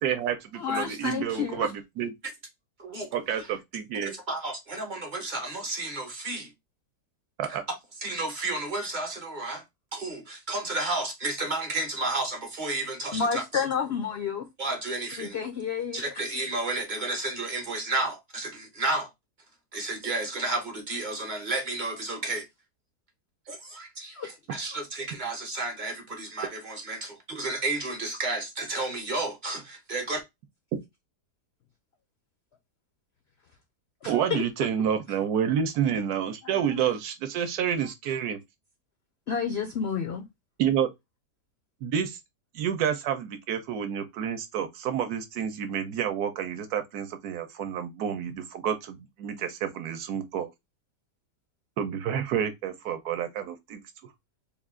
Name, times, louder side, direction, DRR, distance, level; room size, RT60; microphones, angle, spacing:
voice 1, 0.0-0.4 0.7-2.1 3.1-4.1 7.4-7.6 34.1-38.4 40.6-40.9 41.8-42.2 42.5-50.5 51.8-53.8, right 8 dB, 70° right, 1.1 m, -29 dB
voice 2, 0.6-1.7 13.1-14.5 15.2-16.0 19.7-19.8 24.2-24.3 34.0-34.5 36.4-36.8 39.3-40.3, left 6 dB, 80° left, 0.5 m, -30 dB
voice 3, 4.0-6.5 7.5-7.6 8.0-9.6 9.9-13.6 14.6-15.4 15.9-19.1 19.7-22.5 23.5-30.2, right 2 dB, 40° right, 0.7 m, -32 dB
3.5 x 2.4 x 3.6 m
omnidirectional pair, 1.8 m